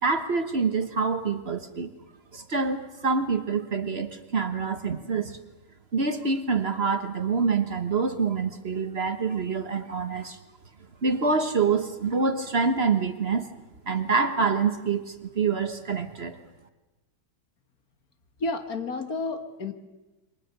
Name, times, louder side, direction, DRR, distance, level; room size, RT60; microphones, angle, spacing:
voice 1, 0.0-1.9 2.3-5.4 5.9-10.4 11.0-13.5 13.9-16.4, right 4 dB, 40° right, 9 dB, 1.4 m, -26 dB
voice 2, 18.4-19.7, left 3 dB, 65° left, 7 dB, 2.2 m, -31 dB
28.5 x 24.0 x 6.8 m, 1.1 s
omnidirectional pair, 1.7 m